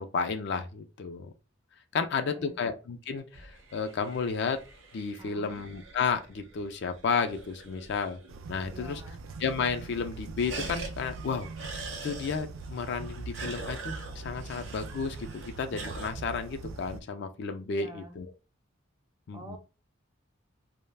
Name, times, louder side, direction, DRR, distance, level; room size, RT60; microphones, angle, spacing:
voice 1, 0.0-1.3 1.9-4.6 4.9-8.2 8.5-9.0 9.4-11.7 12.0-18.3 19.3-19.6, left 5 dB, 55° left, 0.4 m, -32 dB
voice 2, 2.0-2.6 5.2-5.6 8.7-9.2 17.7-18.1 19.3-19.6, right 1 dB, 20° right, 0.5 m, -47 dB
sound 1, 3.2-8.5 8.8-8.9 9.1-9.6 9.9-16.1, right 3 dB, 65° right, 0.7 m, -44 dB
sound 2, 8.3-17.0, right 3 dB, 85° right, 0.4 m, -42 dB
2.3 x 2.1 x 3.2 m
head